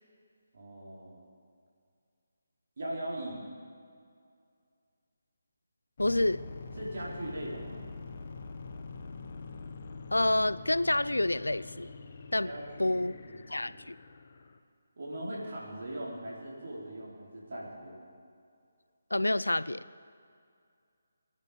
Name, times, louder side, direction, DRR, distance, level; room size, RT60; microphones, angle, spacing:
voice 1, 0.5-1.2 2.8-3.4 6.8-7.8 12.4-13.8 15.0-18.1, right 1 dB, 55° right, -4 dB, 4.7 m, -40 dB
voice 2, 6.0-6.4 10.1-11.9 12.3-12.5 12.8-13.1 13.5-13.9 19.1-19.8, left 1 dB, 85° left, 16 dB, 0.5 m, -28 dB
sound 1, 6.0-14.6, left 4 dB, 45° left, 1.1 m, -45 dB
22.0 x 10.5 x 5.3 m, 2.3 s
figure-of-eight pair, 150°, 0 cm